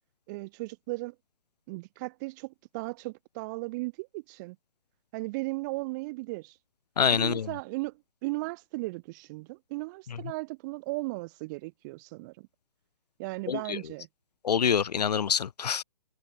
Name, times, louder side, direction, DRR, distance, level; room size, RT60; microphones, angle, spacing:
voice 1, 0.3-1.2 1.7-4.6 5.1-6.5 7.1-7.9 8.2-12.5 13.2-14.1, right 24 dB, 30° right, 1.7 m, -36 dB
voice 2, 7.0-7.5 13.5-13.8 14.4-15.8, left 7 dB, 80° left, 0.4 m, -26 dB
figure-of-eight pair, 140°, 21 cm